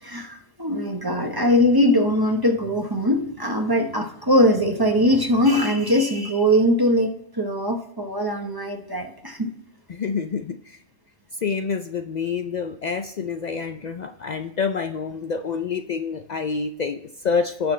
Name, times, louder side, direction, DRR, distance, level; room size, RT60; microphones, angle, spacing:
voice 1, 0.0-9.5, equal, 20° right, 4 dB, 1.0 m, -21 dB
voice 2, 9.9-10.8 11.4-17.7, left 5 dB, 85° left, 7 dB, 0.3 m, -27 dB
17.5 x 6.1 x 3.2 m, 0.74 s
omnidirectional pair, 1.4 m